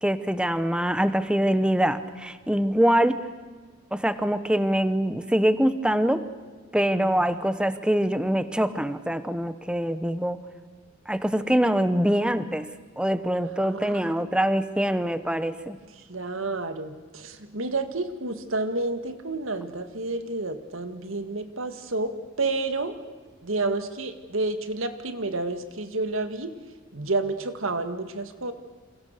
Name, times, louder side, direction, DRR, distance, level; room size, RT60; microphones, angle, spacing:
voice 1, 0.0-3.2 3.9-6.2 6.7-10.4 11.1-12.7 13.0-15.8, equal, 5° right, 12 dB, 1.0 m, -24 dB
voice 2, 6.9-7.2 13.6-14.1 16.0-23.0 23.4-26.5 26.9-28.5, right 3 dB, 80° right, 9 dB, 1.9 m, -30 dB
28.5 x 27.0 x 6.7 m, 1.4 s
head